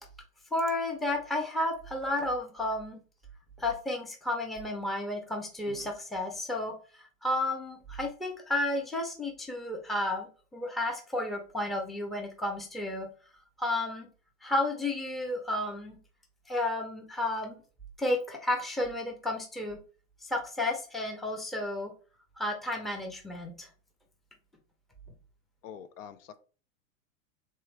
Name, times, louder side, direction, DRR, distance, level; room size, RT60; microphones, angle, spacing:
voice 1, 0.5-3.0 3.6-13.1 13.6-14.1 14.4-16.0 16.5-17.6 18.0-19.8 20.2-21.9 22.4-23.7, left 1 dB, ahead, 1 dB, 0.5 m, -32 dB
voice 2, 25.6-26.4, left 8 dB, 65° left, 12 dB, 0.7 m, -46 dB
3.5 x 3.1 x 4.5 m, 0.38 s
hypercardioid pair, 130°, 41 cm